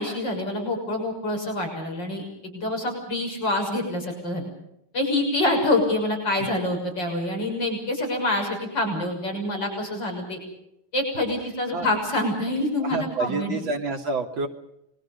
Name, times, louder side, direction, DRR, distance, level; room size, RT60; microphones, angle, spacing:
voice 1, 0.0-4.5 4.9-10.4 10.9-13.6, left 1 dB, 60° left, 1 dB, 7.3 m, -26 dB
voice 2, 12.8-14.5, right 3 dB, 75° right, 2 dB, 3.7 m, -28 dB
30.0 x 22.5 x 5.4 m, 0.81 s
omnidirectional pair, 2.2 m